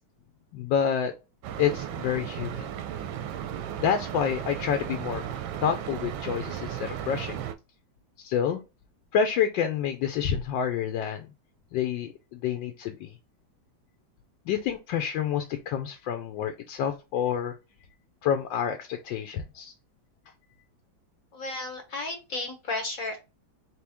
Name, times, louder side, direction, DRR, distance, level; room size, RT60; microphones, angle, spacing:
voice 1, 0.5-1.1 1.6-2.7 3.8-5.2 5.6-7.4 8.2-8.6 9.1-11.3 11.7-13.1 14.5-17.5 18.2-19.7, left 8 dB, 80° left, 5 dB, 1.3 m, -28 dB
sound 1, 1.4-7.5, right 10 dB, 90° right, 1.4 m, -35 dB
voice 2, 21.3-23.2, left 2 dB, 55° left, 3 dB, 1.1 m, -33 dB
4.3 x 2.9 x 3.4 m, 0.28 s
omnidirectional pair, 2.1 m